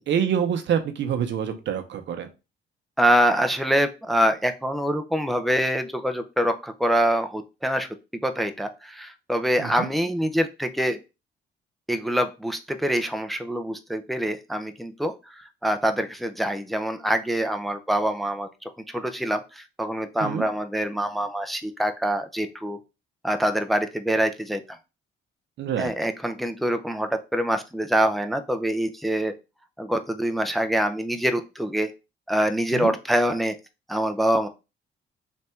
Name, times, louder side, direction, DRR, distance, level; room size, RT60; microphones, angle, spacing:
voice 1, 0.1-2.3 9.6-9.9 20.2-20.4 25.6-25.9 32.7-32.9, right 8 dB, 65° right, 7 dB, 0.8 m, -26 dB
voice 2, 3.0-7.9 8.2-11.0 11.9-18.5 18.9-22.8 23.2-24.8 25.8-29.3 29.8-31.9 32.3-33.6 33.9-34.5, equal, ahead, 7 dB, 0.5 m, -25 dB
3.4 x 2.6 x 4.3 m, 0.28 s
cardioid pair, 90°, 20 cm